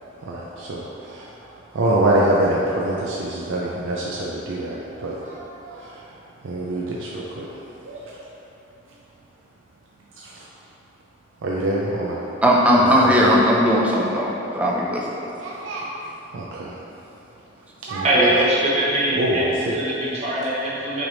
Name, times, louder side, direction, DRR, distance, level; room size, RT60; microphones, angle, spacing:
voice 1, 0.0-6.1 6.4-7.5 7.8-8.2 10.2-10.4 11.4-12.2 12.8-13.1 15.4-15.9 16.3-16.8 17.9-18.3 19.2-19.8, right 1 dB, 85° right, -4 dB, 0.4 m, -25 dB
voice 2, 12.4-15.0, equal, 5° right, -3 dB, 0.4 m, -18 dB
voice 3, 18.0-19.5 19.7-21.1, right 1 dB, 35° right, -7 dB, 0.8 m, -21 dB
6.0 x 3.3 x 2.6 m, 2.9 s
head